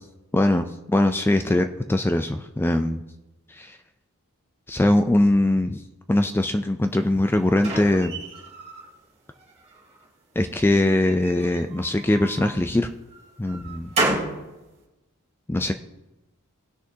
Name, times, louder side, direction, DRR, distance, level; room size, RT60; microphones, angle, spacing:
voice 1, 0.3-3.0 3.5-3.8 4.7-5.8 6.1-8.2 10.4-12.9 13.4-13.9 15.5-15.7, left 1 dB, 10° left, 7 dB, 0.3 m, -21 dB
sound 1, 6.9-8.9 9.3-10.1 11.1-12.5 13.1-14.4, right 2 dB, 30° right, 2.7 m, -31 dB
18.0 x 6.3 x 2.8 m, 1.0 s
head